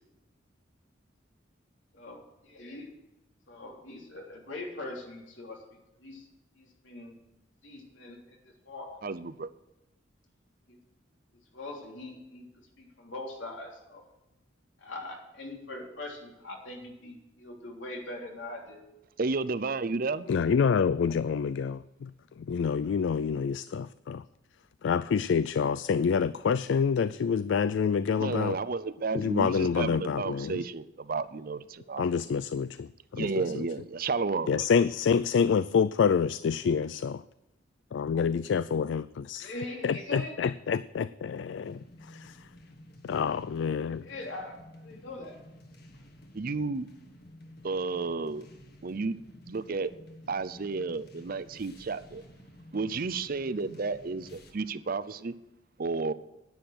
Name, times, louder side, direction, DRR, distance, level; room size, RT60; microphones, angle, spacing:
voice 1, 1.9-2.9 3.5-5.6 6.0-6.3 6.6-7.2 7.6-9.0 10.7-10.8 11.5-12.5 12.8-14.0 14.8-18.8 39.4-40.4 44.0-45.4, left 2 dB, 85° left, 0 dB, 3.2 m, -42 dB
voice 2, 9.0-9.5 19.2-20.3 28.2-32.0 33.2-34.6 46.3-46.9 47.6-48.5 48.8-49.2 49.5-49.9 50.3-52.2 52.7-55.3 55.8-56.1, right 4 dB, 50° right, 15 dB, 0.6 m, -32 dB
voice 3, 20.3-22.1 22.4-24.2 24.8-28.6 29.1-30.7 32.0-33.7 34.5-37.2 37.9-39.5 39.8-42.5 43.0-44.0, left 6 dB, 70° left, 15 dB, 0.3 m, -27 dB
sound 1, 41.6-54.5, left 1 dB, 55° left, 1.8 m, -52 dB
10.0 x 9.7 x 6.1 m, 0.95 s
head